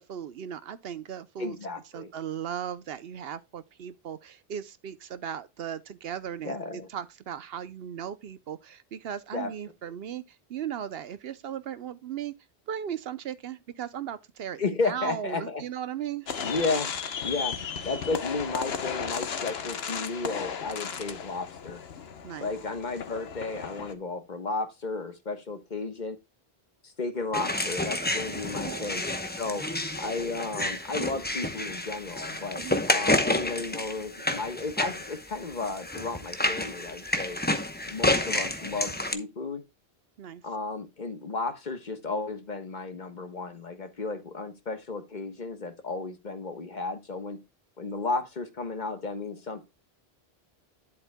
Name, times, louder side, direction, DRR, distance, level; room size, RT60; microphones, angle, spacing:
voice 1, 0.0-1.6 1.9-12.3 12.7-16.3 22.2-22.5 28.6-29.0 29.5-29.6 30.2-30.3 32.6-32.8 40.2-40.4, right 9 dB, 70° right, 0.9 m, -37 dB
voice 2, 1.4-2.1 6.4-6.9 9.3-9.5 14.6-15.6 16.4-16.9 17.2-17.6 17.8-21.8 22.4-26.2 27.0-29.7 30.0-37.4 37.9-39.6 40.4-47.4 47.8-49.7, left 3 dB, 45° left, 1.3 m, -33 dB
Firework Show (Short), 16.3-23.9, left 6 dB, 75° left, 1.2 m, -35 dB
sound 1, 27.3-39.1, left 1 dB, 10° left, 0.8 m, -30 dB
11.0 x 7.5 x 2.2 m
omnidirectional pair, 1.1 m